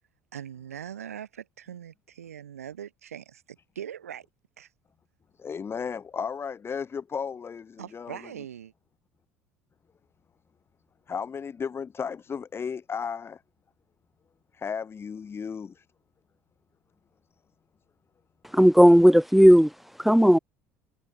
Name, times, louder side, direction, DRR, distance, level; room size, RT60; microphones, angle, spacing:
voice 1, 0.3-4.3 4.6-4.7 7.8-8.7, right 9 dB, 80° right, 3.6 m, -41 dB
voice 2, 5.4-8.2 11.1-13.4 14.5-15.9, left 6 dB, 30° left, 4.1 m, -34 dB
voice 3, 18.5-19.7 20.0-20.4, equal, ahead, 0.5 m, -15 dB
figure-of-eight pair, 60°, 8 cm